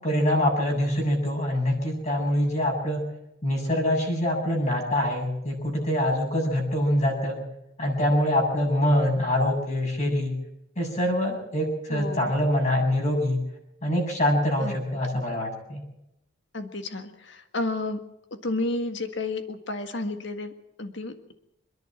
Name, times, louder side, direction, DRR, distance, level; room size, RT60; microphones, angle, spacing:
voice 1, 0.0-3.0 3.4-7.4 7.8-10.3 10.8-13.4 13.8-15.8, left 1 dB, 35° left, 0 dB, 7.6 m, -24 dB
voice 2, 11.9-12.3 14.6-14.7 15.1-15.2 16.5-18.0 18.4-20.5 20.8-21.3, left 2 dB, 65° left, 7 dB, 1.8 m, -31 dB
27.0 x 10.5 x 8.9 m, 0.84 s
head